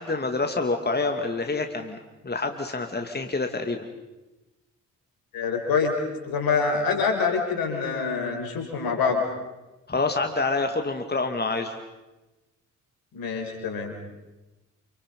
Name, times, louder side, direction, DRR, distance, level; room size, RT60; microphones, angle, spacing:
voice 1, 0.0-2.0 2.2-3.9 9.9-11.8, left 3 dB, 25° left, 5 dB, 2.5 m, -27 dB
voice 2, 5.3-5.9 6.2-9.2 13.1-13.9, left 5 dB, 70° left, 4 dB, 5.4 m, -25 dB
28.5 x 27.0 x 5.5 m, 1.1 s
hypercardioid pair, 40°, 37 cm